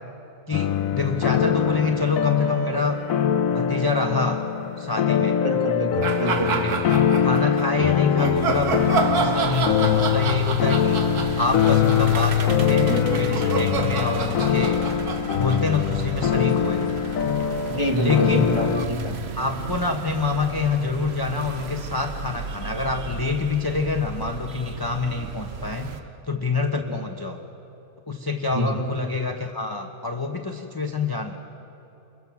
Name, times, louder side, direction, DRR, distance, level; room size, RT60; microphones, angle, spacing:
sound 1, 0.5-18.9, left 8 dB, 70° left, 1.0 m, -23 dB
voice 1, 0.5-3.0 3.5-4.5 4.8-5.4 6.5-6.7 7.2-8.8 9.1-11.0 11.4-14.8 15.4-16.9 17.9-18.5 19.3-26.0 26.3-27.4 28.1-31.4, left 4 dB, 20° left, 3 dB, 0.8 m, -26 dB
voice 2, 5.4-6.8 17.7-19.2 26.7-27.0 28.5-28.8, equal, 20° right, 2 dB, 1.8 m, -26 dB
sound 2, 6.0-7.7 8.2-16.4, right 5 dB, 80° right, 1.8 m, -29 dB
sound 3, 8.3-26.0, right 6 dB, 50° right, 1.1 m, -35 dB
27.0 x 22.0 x 6.0 m, 3.0 s
omnidirectional pair, 1.6 m